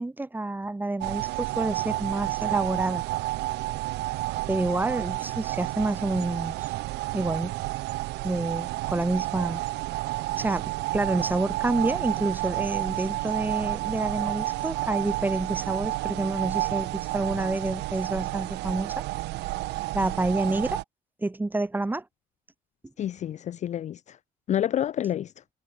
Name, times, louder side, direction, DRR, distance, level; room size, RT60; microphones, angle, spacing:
voice 1, 0.0-3.0 4.5-6.7 7.1-7.5 8.2-9.6 10.4-19.0 19.9-20.8 21.2-22.0, right 2 dB, 10° right, 1.5 m, -28 dB
sound 1, 1.0-20.8, right 20 dB, 90° right, 1.7 m, -31 dB
voice 2, 23.0-24.2 24.5-25.3, left 11 dB, 45° left, 0.5 m, -28 dB
cardioid pair, 110°, 17 cm